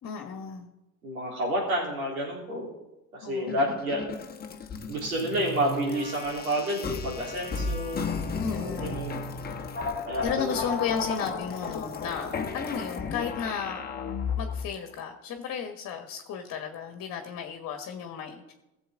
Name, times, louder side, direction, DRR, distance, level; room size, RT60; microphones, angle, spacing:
voice 1, 0.0-0.7 3.2-3.8 8.4-9.1 10.2-13.8 14.4-18.5, left 7 dB, 40° left, 5 dB, 1.4 m, -34 dB
voice 2, 1.0-2.7 3.1-4.0 4.9-8.1 8.5-9.2 10.0-10.5, equal, 90° right, -2 dB, 3.6 m, -29 dB
sound 1, 3.5-14.7, left 4 dB, 20° left, 1.1 m, -34 dB
16.0 x 7.3 x 3.8 m, 0.95 s
hypercardioid pair, 85°, 42 cm